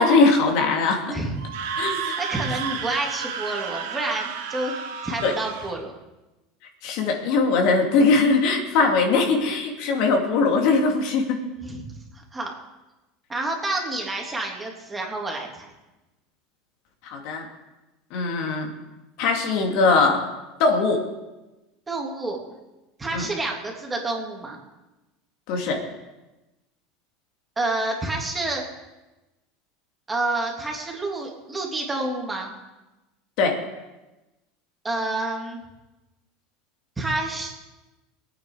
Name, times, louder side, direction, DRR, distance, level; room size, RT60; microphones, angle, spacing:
voice 1, 0.0-1.1 1.8-2.2 5.2-5.3 6.8-11.4 17.0-17.5 18.1-18.7 19.2-20.3 20.6-21.0 23.1-23.3 25.5-25.8 33.4-33.6, left 3 dB, 65° left, 2 dB, 2.7 m, -21 dB
voice 2, 1.1-1.4 1.9-5.9 11.4-11.9 12.1-12.5 13.3-15.7 21.9-22.4 23.0-24.6 27.6-28.6 30.1-32.5 34.8-35.6 37.0-37.5, right 2 dB, 15° right, 0 dB, 3.1 m, -29 dB
Screaming, 1.4-5.7, right 7 dB, 90° right, 2.3 m, -31 dB
22.0 x 9.2 x 5.0 m, 1.1 s
supercardioid pair, 125°, 0 cm